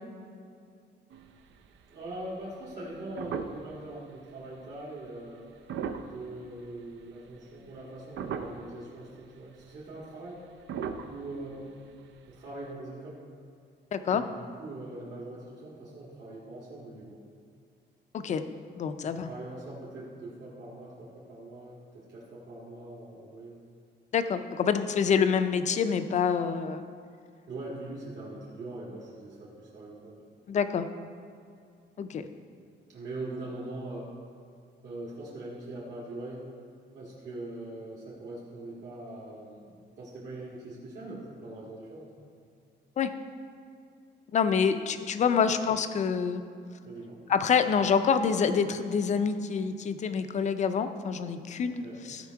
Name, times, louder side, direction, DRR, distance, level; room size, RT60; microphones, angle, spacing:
sound 1, 1.1-1.8 2.3-2.4 2.8-3.9 4.3-4.5 5.5-6.9 7.4-7.8 8.1-8.8 9.2-9.3 9.5-9.7 10.6-12.2 12.4-12.5, right 6 dB, 85° right, 0.6 m, -38 dB
voice 1, 1.9-5.5 6.0-10.4 11.1-11.7 12.3-13.2 14.1-17.2 19.0-23.6 27.5-30.4 32.9-34.1 34.8-36.4 36.9-42.1 45.3-45.5 46.8-47.2 51.8-52.0, right 2 dB, 65° right, -7 dB, 1.9 m, -42 dB
voice 2, 13.9-14.2 18.1-18.4 18.8-19.3 24.1-26.8 30.5-30.9 32.0-32.3 43.0-43.1 44.3-46.4 47.3-52.3, left 6 dB, 40° left, 10 dB, 0.5 m, -27 dB
15.0 x 5.2 x 4.6 m, 2.3 s
cardioid pair, 180°, 19 cm